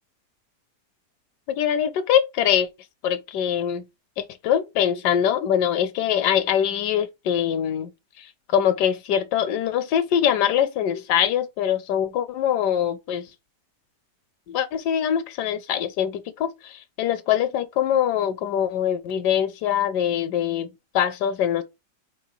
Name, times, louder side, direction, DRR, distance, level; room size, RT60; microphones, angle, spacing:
voice 1, 1.5-2.7 3.0-3.9 4.2-7.9 8.2-8.3 8.5-13.3 14.5-21.6, left 9 dB, 75° left, 1.1 m, -23 dB
4.2 x 3.3 x 3.0 m
omnidirectional pair, 1.8 m